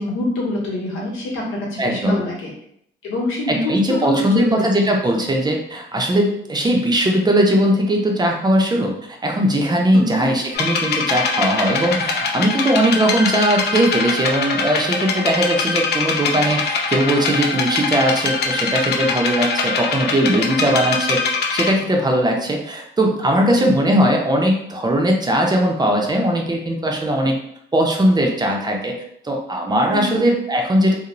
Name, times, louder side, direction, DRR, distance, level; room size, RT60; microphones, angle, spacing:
voice 1, 0.0-2.5 3.0-4.7 9.9-10.2 20.4-20.6 23.6-23.7 29.9-30.3, left 1 dB, 85° left, -4 dB, 0.9 m, -25 dB
voice 2, 1.8-2.2 3.5-8.9 9.2-21.2 21.5-27.4 27.7-28.9 29.2-30.9, right 1 dB, 20° right, 1 dB, 0.5 m, -19 dB
sound 1, 10.5-21.7, left 4 dB, 55° left, 0.5 m, -23 dB
2.5 x 2.0 x 3.0 m, 0.71 s
cardioid pair, 90°, 20 cm